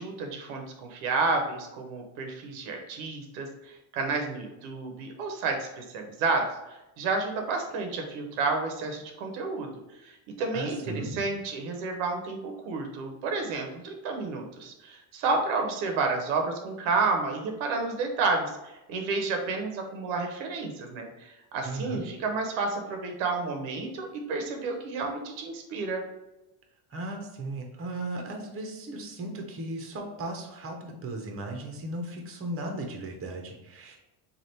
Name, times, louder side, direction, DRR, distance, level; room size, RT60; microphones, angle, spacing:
voice 1, 0.0-6.5 7.0-9.7 10.0-10.1 10.4-26.0, right 3 dB, 90° right, 3 dB, 0.9 m, -30 dB
voice 2, 10.5-11.2 21.6-22.0 26.9-34.0, right 2 dB, 30° right, 2 dB, 0.8 m, -36 dB
3.3 x 2.4 x 4.1 m, 0.99 s
cardioid pair, 110°, 47 cm